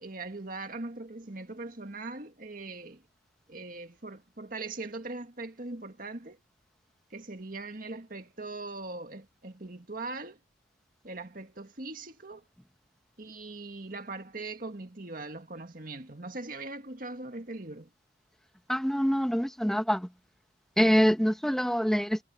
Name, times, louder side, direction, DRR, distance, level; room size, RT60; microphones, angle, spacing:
voice 1, 0.0-3.0 3.5-6.4 7.1-10.4 11.0-12.4 13.2-17.9, right 2 dB, 50° right, 2.0 m, -40 dB
voice 2, 18.7-20.1 20.8-22.2, equal, 5° left, 1.0 m, -25 dB
head